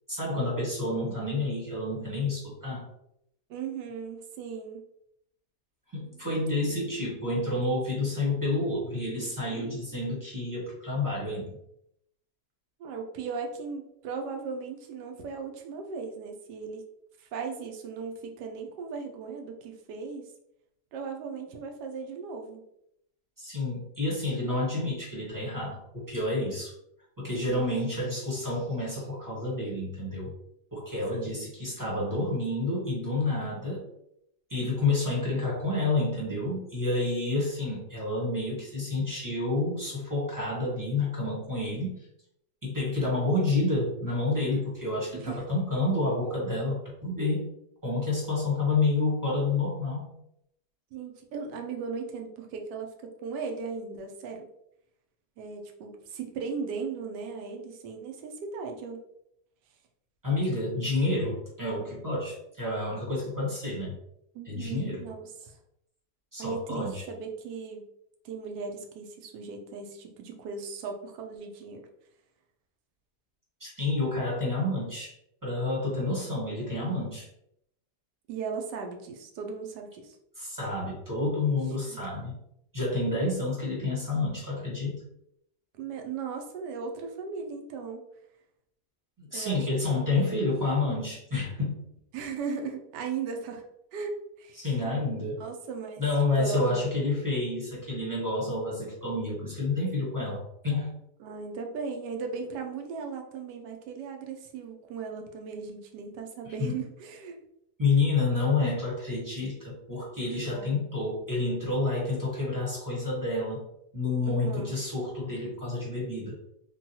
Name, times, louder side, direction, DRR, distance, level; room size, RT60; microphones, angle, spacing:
voice 1, 0.1-2.9 5.9-11.6 23.4-26.7 27.2-30.3 30.7-33.8 34.5-41.9 42.6-47.5 47.8-50.1 60.2-63.9 64.5-65.0 66.3-67.0 73.6-75.2 75.4-77.3 80.3-82.4 82.7-85.0 89.2-91.8 94.6-95.4 96.0-100.9 106.6-106.7 107.8-113.6 113.9-116.4, left 2 dB, 15° right, -6 dB, 1.0 m, -29 dB
voice 2, 3.5-4.8 6.7-6.9 12.8-16.8 17.2-20.3 20.9-22.6 27.3-27.7 31.1-31.4 45.1-45.4 50.9-54.5 55.4-59.0 64.3-65.6 66.4-67.9 68.2-71.9 78.3-80.2 81.9-82.0 85.7-88.0 89.3-89.7 89.9-90.4 92.1-93.6 93.9-96.0 96.4-96.8 101.2-107.4 110.5-110.9 114.2-114.7, right 5 dB, 80° right, 3 dB, 1.2 m, -37 dB
3.8 x 2.3 x 2.7 m, 0.78 s
omnidirectional pair, 1.8 m